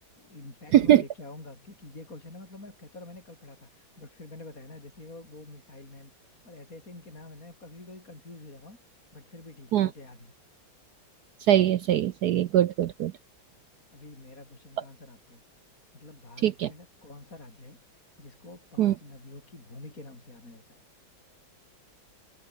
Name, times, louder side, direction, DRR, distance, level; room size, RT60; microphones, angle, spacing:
voice 1, 0.2-10.3 13.9-15.4 15.9-17.8 18.2-20.8, left 2 dB, 40° left, 6.2 m, -47 dB
voice 2, 0.7-1.0 9.7-9.9 11.5-13.1 16.4-16.7 18.8-18.9, right 12 dB, 70° right, 1.0 m, -21 dB
omnidirectional pair, 2.2 m